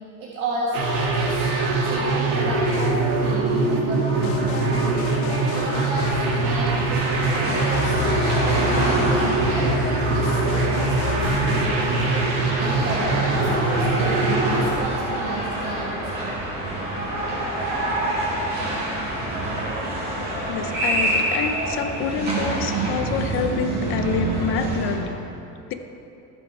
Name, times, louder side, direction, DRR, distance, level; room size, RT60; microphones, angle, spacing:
voice 1, 0.2-1.5 1.8-8.1 8.4-16.3, right 2 dB, 85° right, -5 dB, 1.8 m, -32 dB
sound 1, 0.7-14.6, right 3 dB, 65° right, 1.8 m, -23 dB
sound 2, 2.7-3.5 4.2-6.7 7.2-11.7, left 7 dB, 65° left, 0.8 m, -32 dB
sound 3, 5.9-25.0, right 1 dB, 25° right, 2.2 m, -27 dB
voice 2, 20.5-25.1, left 5 dB, 35° left, 8 dB, 0.4 m, -27 dB
15.0 x 5.2 x 4.5 m, 2.8 s
cardioid pair, 175°, 39 cm